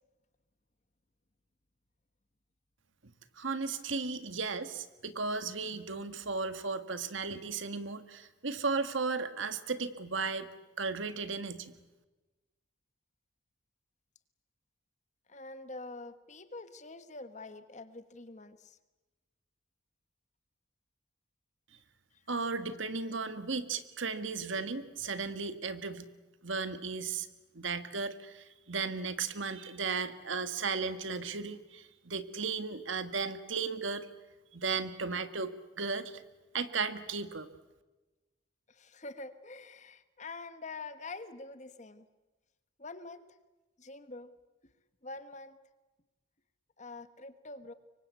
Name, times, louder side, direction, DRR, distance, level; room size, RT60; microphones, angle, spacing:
voice 1, 3.4-10.5 10.8-11.7 22.3-26.1 26.4-27.3 27.5-34.1 34.5-35.5 35.8-36.2 36.5-37.5, right 4 dB, 75° right, 11 dB, 1.7 m, -35 dB
voice 2, 5.6-6.1 15.3-18.8 22.1-22.2 38.7-42.1 42.8-43.4 43.8-44.3 45.0-45.6 46.8-47.7, left 3 dB, 35° left, 11 dB, 1.4 m, -46 dB
25.0 x 24.0 x 8.3 m, 1.1 s
head